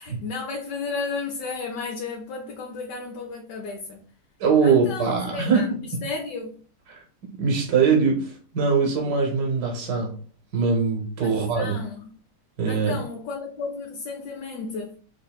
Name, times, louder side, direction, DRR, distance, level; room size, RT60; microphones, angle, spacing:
voice 1, 0.0-4.0 4.6-5.7 6.0-6.6 11.2-12.1 12.7-15.0, left 4 dB, 80° left, 1.3 m, -33 dB
voice 2, 4.4-5.8 6.9-7.0 7.4-10.2 10.5-11.8 12.6-13.0, right 5 dB, 70° right, 1.4 m, -22 dB
5.2 x 2.6 x 2.2 m
omnidirectional pair, 1.8 m